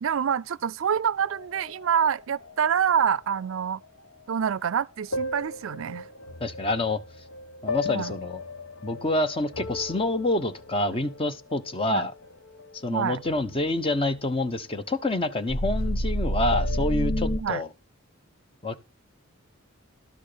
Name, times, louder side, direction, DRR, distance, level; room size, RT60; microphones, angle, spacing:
voice 1, 0.0-3.8 4.3-6.1 7.9-8.1 11.9-12.1 12.9-13.2 17.4-17.6, right 8 dB, 75° right, 0.4 m, -26 dB
sound 1, 1.2-2.8 3.3-3.8 4.4-4.5 5.1-12.8 13.1-14.8 15.2-17.4, left 1 dB, 90° left, 1.4 m, -32 dB
voice 2, 6.4-7.0 7.6-8.4 8.8-12.1 12.8-17.7 18.6-18.8, left 2 dB, 25° left, 1.0 m, -27 dB
12.5 x 6.4 x 5.1 m
head